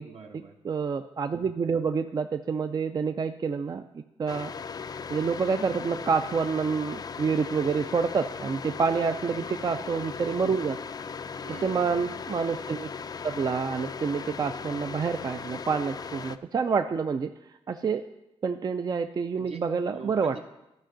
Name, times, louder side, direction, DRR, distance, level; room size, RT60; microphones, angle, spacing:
voice 1, 0.0-0.5 9.2-9.5 11.4-12.1 19.3-20.4, right 5 dB, 65° right, 3 dB, 1.1 m, -44 dB
voice 2, 0.6-4.5 5.1-10.8 11.6-12.9 13.2-17.3 17.7-18.0 18.4-20.4, right 5 dB, 40° right, 8 dB, 0.3 m, -28 dB
sound 1, 4.3-16.4, left 6 dB, 40° left, 0.3 m, -38 dB
12.5 x 5.3 x 3.8 m, 0.91 s
cardioid pair, 75°, 11 cm